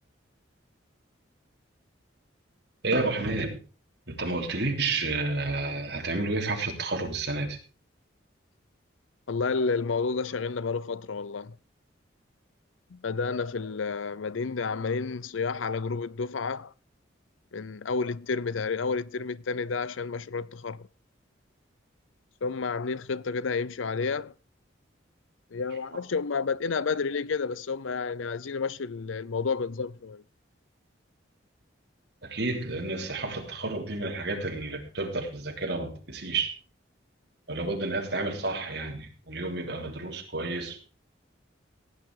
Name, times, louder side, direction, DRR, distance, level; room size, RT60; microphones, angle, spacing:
voice 1, 2.8-3.6 4.1-7.6 32.2-36.5 37.5-40.8, right 3 dB, 60° right, 3.4 m, -30 dB
voice 2, 9.3-11.6 12.9-16.7 17.5-20.9 22.4-24.3 25.5-30.2, left 4 dB, 85° left, 0.6 m, -30 dB
16.5 x 9.5 x 4.8 m
head